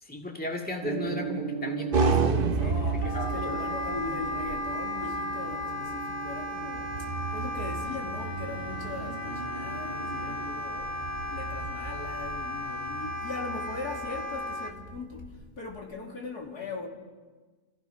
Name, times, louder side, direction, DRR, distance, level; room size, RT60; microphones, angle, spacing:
voice 1, 0.0-2.7 3.1-4.0, left 2 dB, 5° left, 2.2 m, -36 dB
Gong, 0.8-15.0, right 8 dB, 80° right, 2.6 m, -40 dB
sound 1, 1.9-15.1, right 4 dB, 40° right, 1.1 m, -33 dB
voice 2, 2.6-11.0 11.3-16.9, left 3 dB, 85° left, 3.3 m, -40 dB
Wind instrument woodwind instrument, 3.0-14.7, left 2 dB, 25° left, 1.6 m, -35 dB
29.0 x 15.5 x 5.8 m
omnidirectional pair, 1.6 m